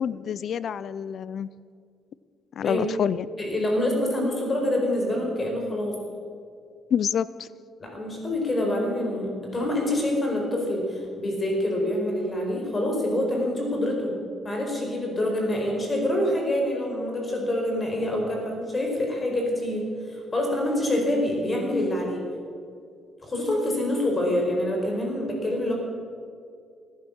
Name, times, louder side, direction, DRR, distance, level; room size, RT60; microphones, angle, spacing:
voice 1, 0.0-1.5 2.6-3.3 6.9-7.5, left 8 dB, 60° left, 18 dB, 0.4 m, -27 dB
voice 2, 3.4-6.0 7.8-14.1 14.4-22.2 23.2-25.7, left 1 dB, 30° left, 0 dB, 4.7 m, -26 dB
18.0 x 10.5 x 7.4 m, 2.3 s
cardioid pair, 90°, 0 cm